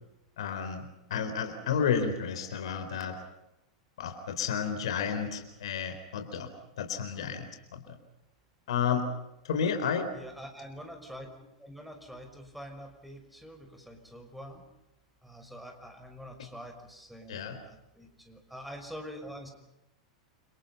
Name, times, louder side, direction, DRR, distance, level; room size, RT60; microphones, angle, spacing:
voice 1, 0.4-3.2 4.0-6.5 6.8-8.0 8.7-9.1 9.5-10.1 17.3-17.6, left 7 dB, 70° left, 7 dB, 4.2 m, -31 dB
voice 2, 10.1-11.3 11.6-14.6 15.2-19.5, equal, ahead, 4 dB, 5.9 m, -45 dB
30.0 x 26.5 x 5.6 m, 0.90 s
figure-of-eight pair, 95°, 3 cm